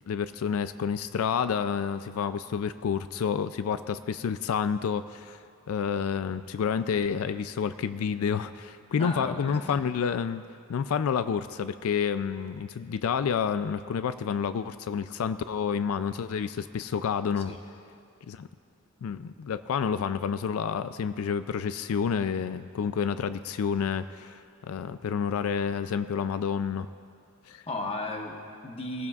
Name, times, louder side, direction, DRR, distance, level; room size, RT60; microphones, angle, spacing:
voice 1, 0.1-5.4 5.7-10.4 10.7-17.6 18.3-18.5 19.0-26.9 27.5-27.6, left 7 dB, 85° left, 12 dB, 0.4 m, -29 dB
voice 2, 9.0-9.8 17.5-17.6 27.7-29.1, left 2 dB, 30° left, 2 dB, 1.0 m, -35 dB
21.5 x 15.5 x 2.4 m, 2.3 s
head